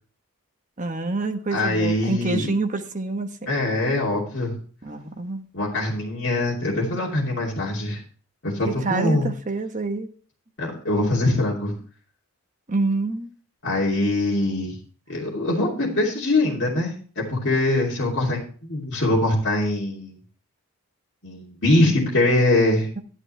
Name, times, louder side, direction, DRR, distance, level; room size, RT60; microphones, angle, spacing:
voice 1, 0.8-3.5 4.8-5.4 8.6-10.1 12.7-13.3, right 3 dB, 35° right, 6 dB, 1.1 m, -27 dB
voice 2, 1.5-2.5 3.5-4.5 5.5-8.0 8.4-9.3 10.6-11.7 13.6-14.8 15.1-20.2 21.2-22.9, left 2 dB, 55° left, -6 dB, 2.8 m, -23 dB
11.0 x 10.5 x 3.2 m, 0.42 s
head